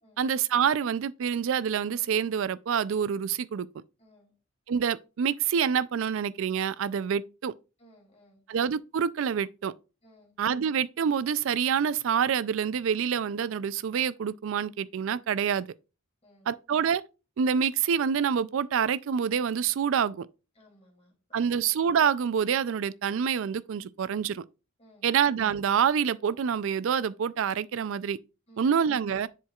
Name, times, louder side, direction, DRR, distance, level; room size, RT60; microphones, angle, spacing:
voice 1, 0.2-3.7 4.7-7.5 8.5-9.7 10.4-15.7 16.5-17.0 17.4-20.3 21.3-24.4 25.0-28.2 28.6-29.3, right 7 dB, 65° right, 0.4 m, -27 dB
voice 2, 4.0-4.3 7.8-8.4 10.0-10.3 16.2-16.5 20.5-21.5 24.8-25.1 28.5-28.8, equal, 30° left, 2.6 m, -59 dB
10.5 x 4.6 x 2.3 m
head